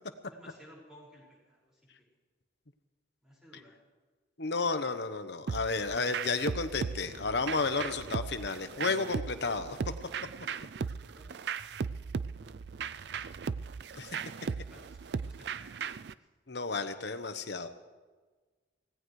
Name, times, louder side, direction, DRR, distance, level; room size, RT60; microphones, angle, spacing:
voice 1, 0.3-1.8 3.2-3.8 10.2-10.6 11.0-11.8 14.3-14.4 14.7-15.6 15.9-16.1, equal, 5° right, -6 dB, 5.5 m, -57 dB
voice 2, 4.4-9.8 14.0-14.2 16.5-17.7, left 4 dB, 65° left, 9 dB, 1.1 m, -32 dB
sound 1, 5.5-16.1, right 5 dB, 60° right, 0.4 m, -37 dB
25.0 x 17.5 x 3.3 m, 1.4 s
head